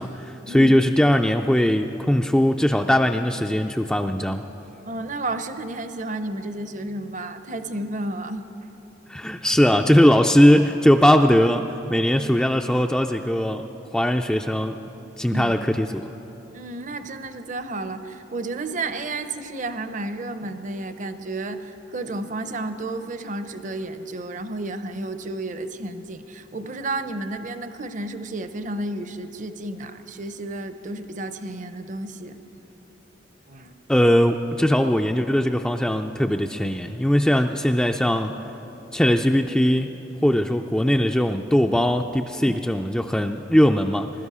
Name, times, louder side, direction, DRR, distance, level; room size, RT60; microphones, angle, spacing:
voice 1, 0.0-4.4 9.1-13.7 13.9-14.8 15.2-16.0 33.9-38.4 38.9-39.9 40.2-44.1, equal, 5° left, 4 dB, 0.3 m, -20 dB
voice 2, 4.8-8.5 15.3-15.5 16.5-32.4 33.5-33.7, right 2 dB, 45° right, 10 dB, 0.6 m, -32 dB
21.0 x 13.0 x 4.9 m, 3.0 s
head